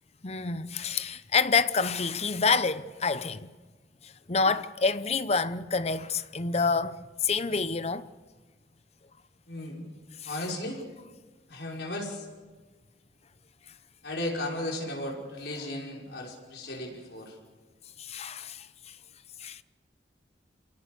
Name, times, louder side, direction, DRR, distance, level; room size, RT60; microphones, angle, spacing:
voice 1, 0.2-3.5 4.0-8.1 10.2-10.3 18.0-18.7 19.4-19.6, left 4 dB, 35° left, 0.8 m, -28 dB
voice 2, 9.5-9.9 10.2-10.8 11.5-12.3 14.0-17.4, left 1 dB, 75° left, 5.7 m, -35 dB
28.0 x 17.5 x 6.9 m
head